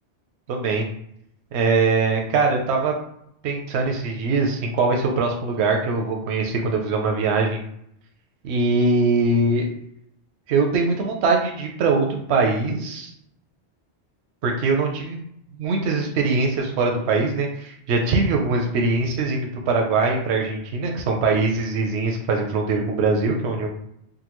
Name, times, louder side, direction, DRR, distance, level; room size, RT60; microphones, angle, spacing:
voice 1, 0.5-0.9 1.5-2.9 3.4-7.6 8.4-9.7 10.5-13.1 14.4-15.2 15.6-23.7, right 3 dB, 85° right, 2 dB, 0.9 m, -22 dB
3.8 x 2.2 x 2.9 m, 0.74 s
omnidirectional pair, 1.1 m